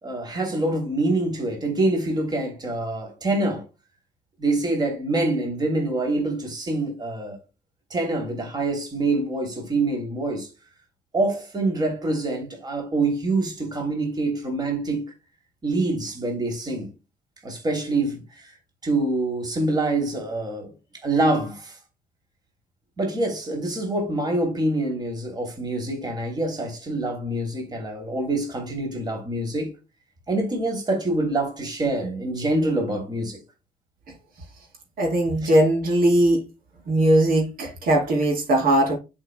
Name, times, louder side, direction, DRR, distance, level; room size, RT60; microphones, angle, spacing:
voice 1, 0.0-3.7 4.4-7.4 7.9-10.5 11.1-15.0 15.6-16.9 17.4-18.5 18.8-20.7 21.0-21.8 23.0-29.7 30.3-33.4 35.4-35.5, right 2 dB, 30° right, 3.0 m, -25 dB
voice 2, 35.0-36.4 36.9-39.0, right 1 dB, 85° right, 3.8 m, -19 dB
11.0 x 5.6 x 2.2 m
cardioid pair, 125°, 14 cm